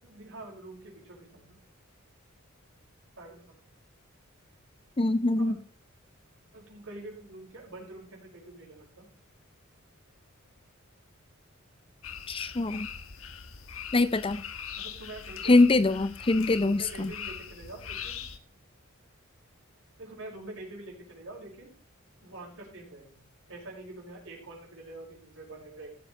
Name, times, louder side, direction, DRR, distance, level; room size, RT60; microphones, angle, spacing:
voice 1, 0.0-1.6 3.2-3.5 5.4-5.5 6.5-9.1 14.8-15.6 16.5-18.2 20.0-21.7 22.2-23.2 23.5-25.9, right 2 dB, 65° right, -2 dB, 5.8 m, -45 dB
voice 2, 5.0-5.6 12.3-12.9 13.9-14.4 15.4-17.1, left 2 dB, 25° left, 14 dB, 0.5 m, -23 dB
sound 1, 12.0-18.4, left 7 dB, 80° left, 1.2 m, -41 dB
16.0 x 7.6 x 4.7 m, 0.42 s
head